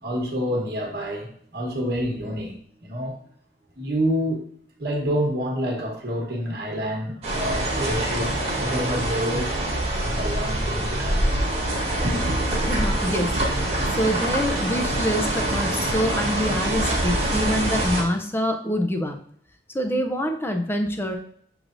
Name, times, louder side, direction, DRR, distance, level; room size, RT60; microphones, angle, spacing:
voice 1, 0.0-2.5 2.8-3.2 3.8-4.4 4.8-11.2 11.7-12.3, equal, 60° right, -1 dB, 1.2 m, -28 dB
sound 1, 7.2-18.0, right 1 dB, 35° right, 1.2 m, -25 dB
voice 2, 12.7-13.3 13.6-19.2 19.7-21.2, equal, 15° left, 4 dB, 0.4 m, -26 dB
6.4 x 3.1 x 2.5 m, 0.63 s
head